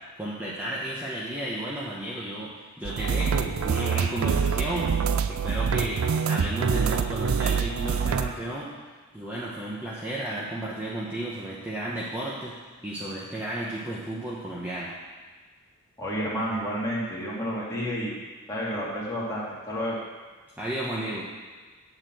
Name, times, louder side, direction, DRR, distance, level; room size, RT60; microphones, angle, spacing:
voice 1, 0.2-4.9 5.3-8.7 9.1-12.6 12.8-15.0 20.6-21.3, right 1 dB, 10° right, -7 dB, 1.1 m, -33 dB
sound 1, 2.8-8.3, right 6 dB, 70° right, 0.4 m, -25 dB
voice 2, 16.0-18.2 18.5-20.0, equal, 15° left, -7 dB, 2.4 m, -30 dB
9.5 x 4.3 x 7.6 m, 1.4 s
head